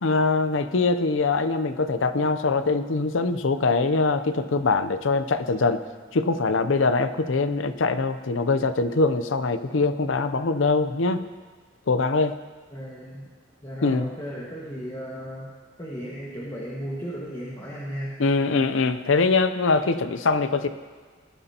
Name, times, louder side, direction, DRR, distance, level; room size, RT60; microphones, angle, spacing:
voice 1, 0.0-5.8 6.1-11.2 11.9-12.4 13.8-14.1 18.2-20.7, left 3 dB, 80° left, 11 dB, 0.7 m, -23 dB
voice 2, 12.7-13.3 13.6-15.5 15.8-18.1 20.6-20.7, equal, 20° left, -6 dB, 1.7 m, -35 dB
19.5 x 11.0 x 2.9 m, 1.4 s
head